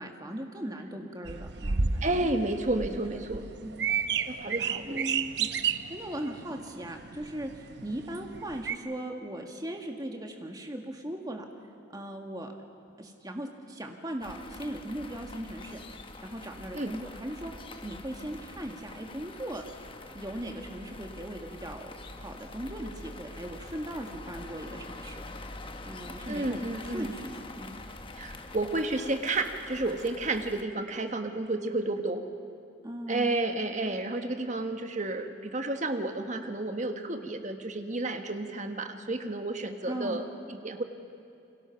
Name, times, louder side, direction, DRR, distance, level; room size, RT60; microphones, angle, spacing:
voice 1, 0.0-2.3 2.9-3.9 4.3-4.4 4.9-5.3 5.9-11.5 11.9-12.5 13.0-15.8 16.2-17.5 17.8-19.7 20.1-25.2 25.8-26.6 26.9-27.8 32.8-33.4 39.9-40.2, right 1 dB, 20° right, 3 dB, 1.9 m, -38 dB
sound 1, 1.3-8.8, right 6 dB, 60° right, 0.8 m, -32 dB
voice 2, 2.0-3.4 4.3-5.1 5.4-5.5 16.7-16.9 26.3-27.1 28.1-32.2 33.1-40.8, right 2 dB, 40° right, 6 dB, 1.4 m, -31 dB
sound 2, 14.2-30.6, left 2 dB, 25° left, 1.0 m, -45 dB
30.0 x 22.5 x 5.9 m, 2.7 s
head